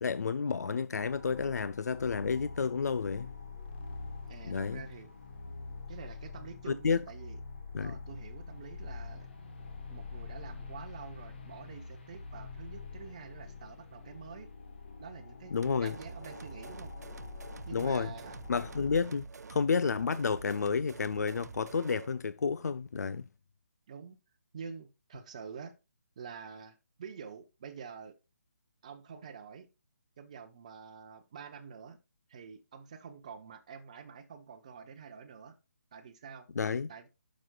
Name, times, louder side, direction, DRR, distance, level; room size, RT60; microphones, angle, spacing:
voice 1, 0.0-3.3 4.5-4.8 6.7-7.0 7.7-8.0 15.5-15.9 17.7-18.1 18.5-23.2 36.6-36.9, left 5 dB, 85° left, 0.4 m, -31 dB
sound 1, 1.0-19.0, left 4 dB, 40° left, 1.2 m, -45 dB
voice 2, 4.3-5.1 5.9-7.4 7.8-9.3 9.9-14.5 15.0-15.5 15.8-16.9 17.6-18.4 23.9-24.2 24.5-25.8 26.2-28.1 28.8-29.7 30.2-32.0 32.3-35.5 35.9-36.5 36.9-37.1, right 6 dB, 25° right, 0.8 m, -47 dB
sound 2, 15.6-22.1, right 5 dB, 90° right, 0.4 m, -47 dB
9.7 x 6.2 x 2.3 m
hypercardioid pair, 175°, 9 cm